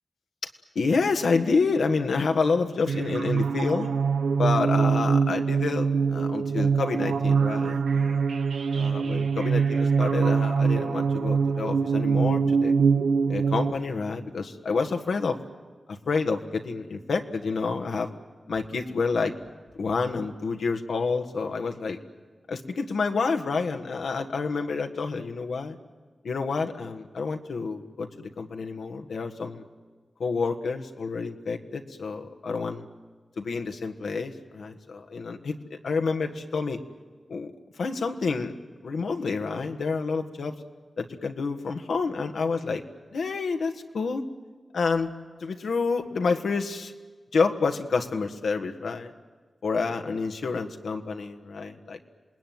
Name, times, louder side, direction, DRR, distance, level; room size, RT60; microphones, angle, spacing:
voice 1, 0.7-3.9 4.4-8.2 8.7-12.7 13.3-15.4 15.9-18.2 18.5-19.3 19.8-22.0 22.5-25.8 26.2-29.6 30.2-32.9 33.4-36.8 37.3-37.5 37.8-40.5 41.0-42.8 43.1-44.2 44.7-45.1 45.4-46.9 47.3-49.1 49.6-52.0, left 4 dB, 85° left, 5 dB, 1.6 m, -28 dB
sound 1, 2.9-13.7, right 5 dB, 90° right, 0.8 m, -24 dB
27.5 x 19.5 x 9.4 m, 1.4 s
cardioid pair, 45°, 0 cm